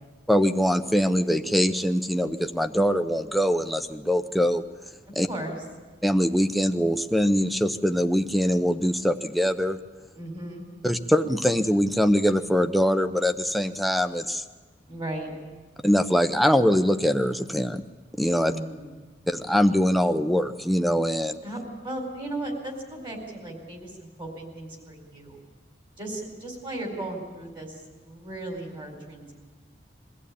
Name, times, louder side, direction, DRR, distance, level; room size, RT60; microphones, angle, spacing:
voice 1, 0.3-4.6 5.2-5.3 6.0-9.8 10.8-14.4 15.8-17.8 18.2-18.5 19.3-21.4, equal, ahead, 10 dB, 0.6 m, -23 dB
voice 2, 10.1-10.7 14.9-15.3 18.4-18.9 21.4-25.4 26.0-29.3, right 1 dB, 25° right, 2 dB, 4.3 m, -36 dB
22.5 x 15.0 x 8.6 m, 1.3 s
head